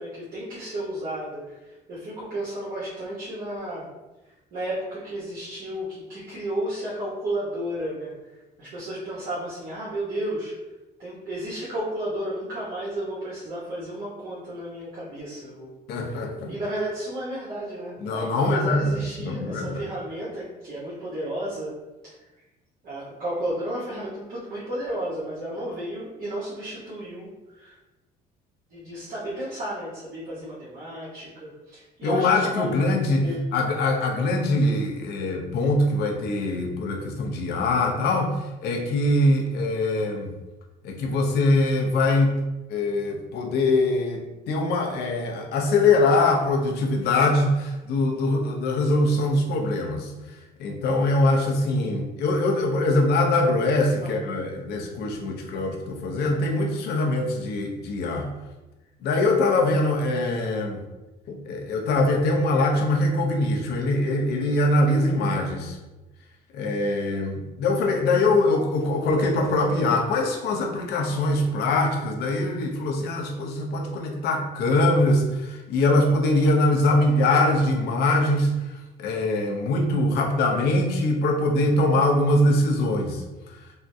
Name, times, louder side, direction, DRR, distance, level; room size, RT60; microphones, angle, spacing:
voice 1, 0.0-3.9 4.2-10.5 11.0-15.7 16.1-16.2 16.5-22.1 22.8-27.8 28.7-33.5 54.0-54.3, right 1 dB, 60° right, -9 dB, 1.1 m, -33 dB
voice 2, 15.9-16.5 18.0-19.8 32.0-33.2 33.5-40.3 40.8-42.4 42.7-58.3 59.0-60.8 61.3-65.8 66.5-83.2, left 2 dB, 75° left, 1 dB, 0.6 m, -23 dB
3.6 x 2.1 x 2.7 m, 1.1 s
cardioid pair, 110°, 17 cm